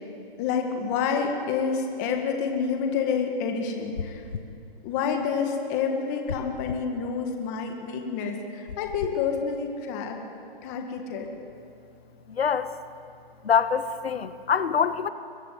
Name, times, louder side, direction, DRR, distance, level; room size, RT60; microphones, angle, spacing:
voice 1, 0.4-4.2 4.8-10.2 10.6-11.3, left 6 dB, 20° left, 3 dB, 1.9 m, -28 dB
sound 1, 4.0-4.6 6.3-6.9 8.7-9.2, left 6 dB, 65° left, 1.4 m, -35 dB
voice 2, 12.3-12.7 13.4-15.1, left 6 dB, 90° left, 11 dB, 1.4 m, -24 dB
23.0 x 20.5 x 9.3 m, 2.6 s
hypercardioid pair, 170°, 30 cm